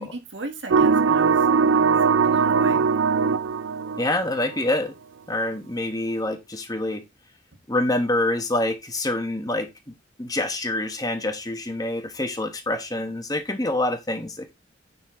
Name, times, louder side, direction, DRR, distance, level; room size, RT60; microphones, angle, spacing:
voice 1, 0.0-1.4 1.7-2.0 2.2-2.9, right 2 dB, 70° right, 1.8 m, -36 dB
sound 1, 0.7-4.6, right 5 dB, 85° right, 0.5 m, -20 dB
voice 2, 4.0-4.9 5.3-7.0 7.7-9.7 10.2-14.5, left 1 dB, 20° left, 1.2 m, -26 dB
10.0 x 4.2 x 4.3 m
head